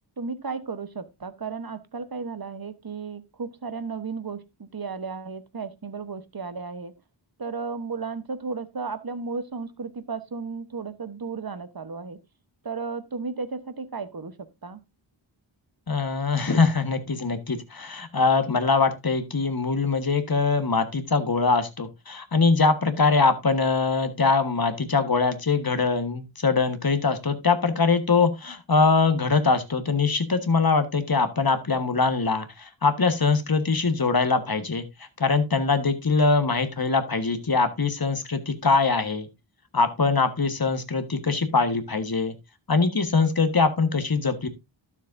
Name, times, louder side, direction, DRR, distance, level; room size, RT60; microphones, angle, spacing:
voice 1, 0.2-6.9 7.4-12.2 12.6-14.3 14.6-14.8, right 4 dB, 50° right, 1.1 m, -34 dB
voice 2, 15.9-34.8 35.2-39.3 39.7-42.3 42.7-44.5, left 4 dB, 50° left, 1.4 m, -23 dB
12.5 x 7.3 x 2.6 m
wide cardioid pair, 55°, 47 cm